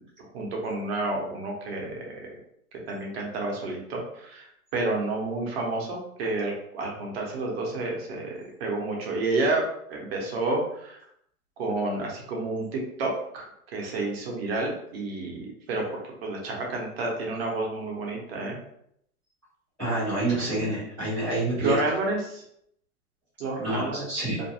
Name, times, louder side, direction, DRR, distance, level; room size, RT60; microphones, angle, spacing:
voice 1, 0.2-2.1 2.9-8.3 8.6-11.0 11.6-15.8 16.2-18.6 21.6-22.4 23.4-24.1, right 2 dB, 40° right, -1 dB, 0.8 m, -30 dB
voice 2, 19.8-21.8 23.6-24.4, right 2 dB, 5° left, -20 dB, 0.4 m, -27 dB
2.5 x 2.2 x 2.7 m, 0.72 s
hypercardioid pair, 135°, 46 cm